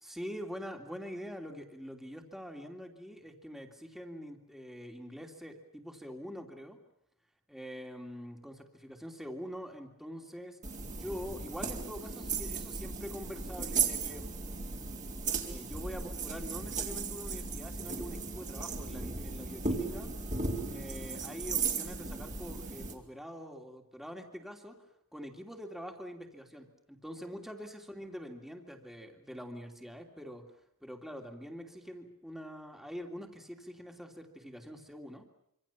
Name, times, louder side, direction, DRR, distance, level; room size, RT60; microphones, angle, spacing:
voice 1, 0.0-6.8 7.5-14.3 15.4-20.1 20.7-24.8 25.1-30.4 30.8-35.3, equal, ahead, 3 dB, 3.0 m, -44 dB
sound 1, 10.6-22.9, right 4 dB, 35° right, 4.1 m, -36 dB
26.5 x 26.0 x 7.3 m, 0.74 s
head